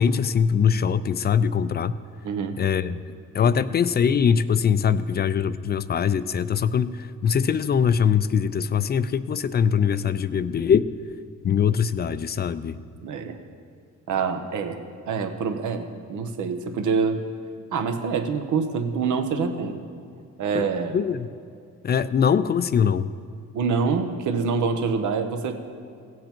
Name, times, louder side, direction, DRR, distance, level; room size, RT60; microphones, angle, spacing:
voice 1, 0.0-1.9 2.6-3.0 3.3-10.9 11.4-12.8 20.5-20.7 20.9-21.3 21.8-23.1, left 7 dB, 35° left, 14 dB, 0.4 m, -22 dB
voice 2, 2.2-2.6 3.4-3.5 13.0-13.4 14.1-14.8 15.1-17.2 17.7-19.7 20.4-21.0 23.5-25.5, right 5 dB, 75° right, 7 dB, 1.1 m, -26 dB
16.5 x 7.7 x 4.5 m, 2.4 s
cardioid pair, 90°, 30 cm